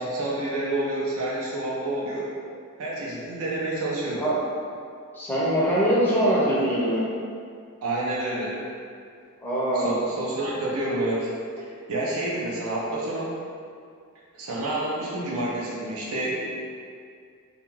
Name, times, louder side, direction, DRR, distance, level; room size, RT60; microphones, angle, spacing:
voice 1, 0.0-2.3 2.8-4.2 7.8-8.6 9.7-11.3 11.9-13.3 14.3-16.4, right 1 dB, 85° right, -6 dB, 0.6 m, -28 dB
voice 2, 5.1-7.1 9.4-9.9, equal, 10° left, -8 dB, 0.5 m, -23 dB
2.4 x 2.2 x 3.0 m, 2.3 s
head